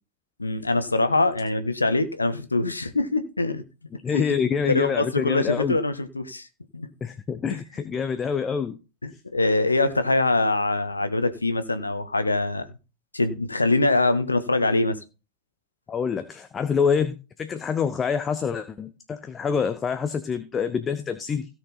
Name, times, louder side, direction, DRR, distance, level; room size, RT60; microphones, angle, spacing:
voice 1, 0.4-3.6 4.1-6.5 6.7-6.9 7.5-7.6 9.0-12.7 13.1-15.0, left 2 dB, 80° left, 1.2 m, -24 dB
voice 2, 3.9-5.8 7.0-8.8 15.9-21.5, left 6 dB, 20° left, 0.9 m, -26 dB
17.0 x 6.4 x 4.3 m
figure-of-eight pair, 90°, 0 cm